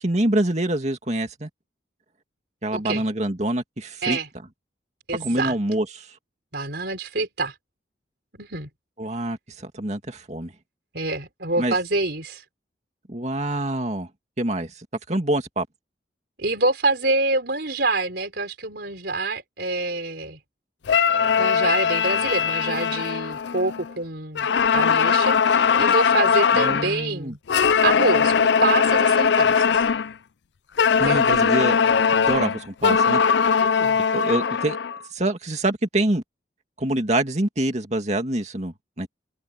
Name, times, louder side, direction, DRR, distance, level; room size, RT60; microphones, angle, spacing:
voice 1, 0.0-1.5 2.6-4.2 5.2-6.1 9.0-10.5 11.6-11.7 13.1-14.1 14.4-15.7 26.5-27.3 31.0-33.2 34.1-34.8 35.1-36.2 36.8-39.1, right 1 dB, 40° right, 2.4 m, -26 dB
voice 2, 2.7-3.0 4.0-4.3 5.1-5.5 6.5-7.5 8.4-8.7 10.9-12.4 16.4-20.4 21.4-24.5 24.7-27.4 27.8-29.9 31.0-31.2 33.6-34.0, right 2 dB, 65° right, 4.5 m, -26 dB
sound 1, 20.9-23.9 24.4-27.0 27.5-30.1 30.8-35.0, left 6 dB, 75° left, 0.5 m, -20 dB
open air
head